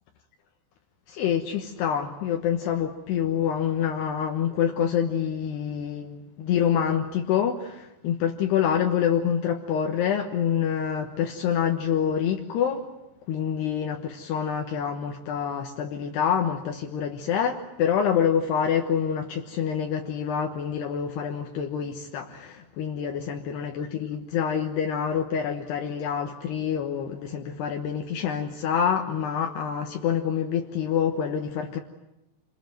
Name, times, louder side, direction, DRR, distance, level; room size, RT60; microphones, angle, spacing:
voice 1, 1.1-12.8 13.3-31.8, left 8 dB, 75° left, 3 dB, 3.2 m, -26 dB
28.0 x 21.5 x 9.3 m, 0.92 s
omnidirectional pair, 5.1 m